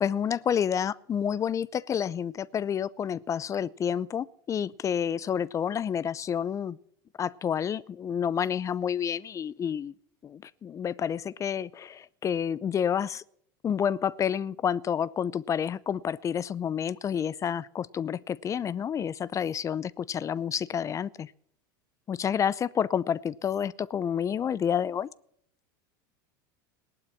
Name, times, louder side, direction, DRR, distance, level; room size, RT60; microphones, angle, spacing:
voice 1, 0.0-6.8 7.2-9.9 10.2-13.2 13.6-21.3 22.1-25.1, left 8 dB, 30° left, 0.5 m, -29 dB
18.0 x 11.5 x 5.9 m
hypercardioid pair, 105°, 11 cm